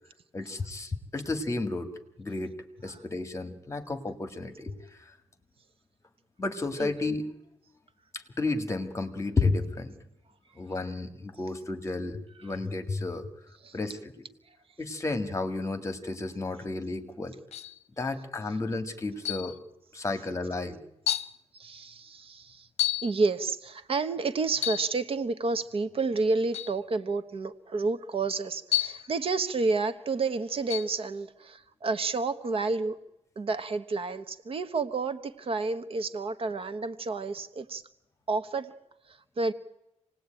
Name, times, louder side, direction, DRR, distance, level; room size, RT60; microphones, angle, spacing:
voice 1, 0.3-1.9 2.2-2.6 2.8-4.8 6.4-7.3 8.1-9.9 10.6-13.3 13.7-14.0 14.8-17.4 18.0-19.5 19.9-20.8, left 3 dB, 25° left, 9 dB, 1.9 m, -32 dB
sound 1, 17.5-17.8 19.3-19.6 20.4-20.5 21.1-21.4 22.8-23.2 24.6-25.0 26.5-26.8 28.7-29.1 30.7-31.0, left 14 dB, 60° left, 0.8 m, -30 dB
voice 2, 21.5-22.7 23.0-33.0 33.4-37.8 38.3-38.7 39.1-39.5, right 3 dB, 50° right, 11 dB, 1.1 m, -30 dB
27.0 x 19.0 x 9.0 m, 0.88 s
wide cardioid pair, 165°, 12 cm